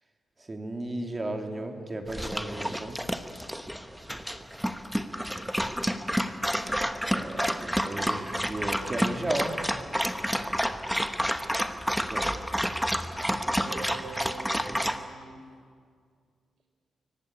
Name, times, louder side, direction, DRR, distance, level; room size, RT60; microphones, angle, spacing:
voice 1, 0.4-3.0 7.0-9.6 12.0-12.3, right 2 dB, 20° right, 4 dB, 2.6 m, -34 dB
Dog, 2.1-15.0, equal, ahead, 1.1 m, -30 dB
voice 2, 3.8-4.6 10.2-11.1 13.6-15.4, right 4 dB, 85° right, 4 dB, 4.8 m, -45 dB
24.0 x 18.5 x 9.9 m, 2.1 s
cardioid pair, 125°, 0 cm